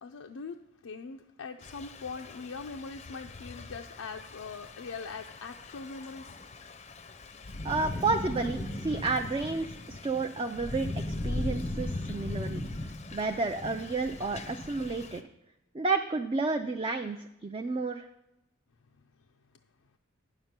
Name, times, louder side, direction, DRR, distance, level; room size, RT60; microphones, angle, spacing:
voice 1, 0.0-6.4, left 4 dB, 90° left, 3 dB, 0.5 m, -42 dB
Thunder / Rain, 1.6-15.2, left 2 dB, 30° left, 0.5 m, -39 dB
voice 2, 7.6-12.6 13.1-15.2 15.7-18.1, right 3 dB, 25° right, 5 dB, 0.3 m, -31 dB
9.5 x 6.8 x 5.9 m, 0.87 s
head